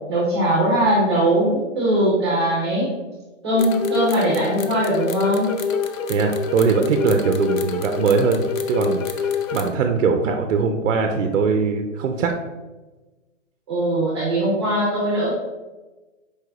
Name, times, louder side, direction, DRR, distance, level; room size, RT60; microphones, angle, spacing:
voice 1, 0.1-2.9 3.4-5.5 13.7-15.3, right 1 dB, 20° right, -7 dB, 0.8 m, -20 dB
sound 1, 3.6-9.7, left 6 dB, 90° left, 0.6 m, -26 dB
voice 2, 6.1-12.4, right 5 dB, 70° right, 5 dB, 0.5 m, -21 dB
4.5 x 3.1 x 2.3 m, 1.2 s
hypercardioid pair, 175°, 39 cm